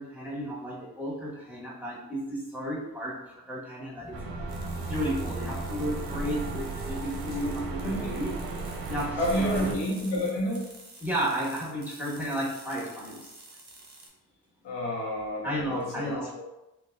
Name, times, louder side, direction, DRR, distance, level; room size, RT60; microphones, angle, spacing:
voice 1, 0.0-3.1 3.5-4.1 4.8-8.3 8.9-9.7 11.0-13.2 15.4-16.3, equal, 5° right, -5 dB, 1.2 m, -33 dB
sound 1, 4.0-9.6, left 2 dB, 15° left, 1.0 m, -47 dB
sound 2, 4.1-9.7, right 3 dB, 60° right, 0.6 m, -35 dB
sound 3, 4.5-14.1, right 2 dB, 35° right, 1.0 m, -49 dB
voice 2, 9.2-10.7 14.6-16.4, equal, 90° left, -2 dB, 0.8 m, -30 dB
3.9 x 2.3 x 2.3 m, 0.93 s
supercardioid pair, 50°, 41 cm